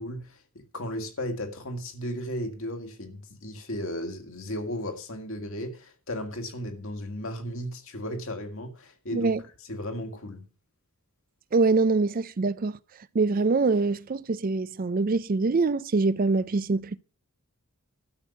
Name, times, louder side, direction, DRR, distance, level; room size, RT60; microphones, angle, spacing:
voice 1, 0.0-9.3 9.7-10.5, equal, 65° left, 2.1 m, -35 dB
voice 2, 11.5-12.8 13.1-17.0, right 3 dB, 40° right, 0.5 m, -24 dB
12.5 x 6.3 x 7.1 m
head